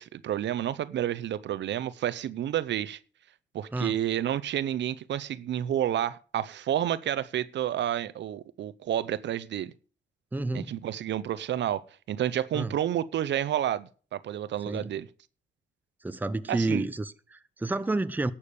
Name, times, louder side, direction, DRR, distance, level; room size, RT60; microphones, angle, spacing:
voice 1, 0.0-3.0 3.5-9.7 10.5-15.1 16.5-16.9, right 11 dB, 65° right, 0.7 m, -30 dB
voice 2, 10.3-10.7 12.5-12.7 14.7-14.9 16.0-18.3, right 2 dB, 10° right, 0.7 m, -30 dB
11.5 x 7.2 x 6.9 m
cardioid pair, 90°, 20 cm